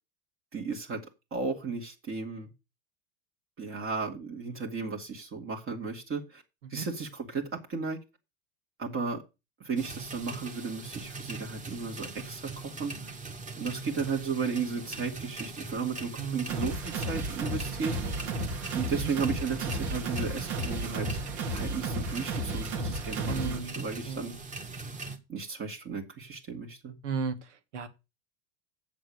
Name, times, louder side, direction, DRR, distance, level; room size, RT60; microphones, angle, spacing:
voice 1, 0.5-2.5 3.6-6.4 6.7-8.0 8.8-9.2 9.6-13.1 13.6-18.1 18.7-21.2 21.5-24.4 25.3-27.0, right 5 dB, 35° right, 2.6 m, -34 dB
sound 1, 9.8-25.2, right 3 dB, 20° right, 2.2 m, -41 dB
voice 2, 16.2-16.6 18.9-19.1 23.3-24.3 27.0-27.4 27.7-27.9, right 6 dB, 85° right, 1.8 m, -35 dB
sound 2, 16.5-23.6, right 2 dB, 65° right, 2.8 m, -33 dB
7.6 x 7.5 x 6.6 m
hypercardioid pair, 95°, 35 cm